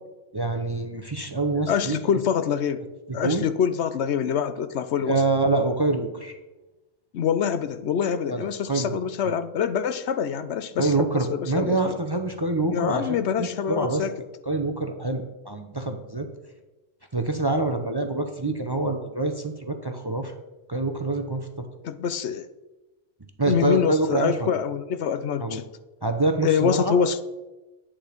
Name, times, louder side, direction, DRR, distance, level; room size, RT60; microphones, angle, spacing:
voice 1, 0.3-2.0 3.1-3.5 5.0-6.4 8.3-9.0 9.2-9.3 10.8-14.1 14.5-16.3 17.1-20.3 20.7-21.7 23.4-24.5 25.4-25.6 26.0-26.9, right 2 dB, 25° right, 6 dB, 0.7 m, -26 dB
voice 2, 1.7-2.8 3.1-5.2 7.1-12.0 12.7-14.1 21.8-22.5 23.5-25.6 26.4-27.2, left 7 dB, 70° left, 13 dB, 0.9 m, -25 dB
10.5 x 8.6 x 5.2 m, 1.1 s
omnidirectional pair, 1.2 m